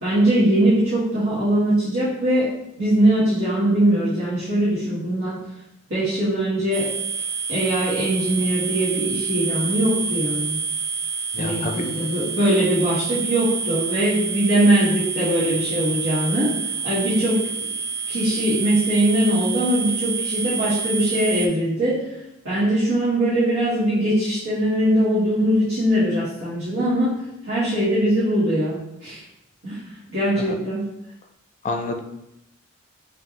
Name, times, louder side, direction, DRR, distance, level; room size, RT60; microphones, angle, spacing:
voice 1, 0.0-2.5 2.8-5.4 5.9-6.9 7.5-10.6 11.4-17.4 18.1-22.2 22.4-27.2 27.4-29.2 29.6-29.8 30.1-30.9, right 1 dB, 75° right, -12 dB, 1.5 m, -21 dB
sound 1, 6.7-21.5, right 5 dB, 55° right, 0.6 m, -28 dB
voice 2, 11.3-11.7 30.5-30.6 31.6-32.0, left 3 dB, 35° left, 4 dB, 0.4 m, -27 dB
5.3 x 2.6 x 2.9 m, 0.83 s
head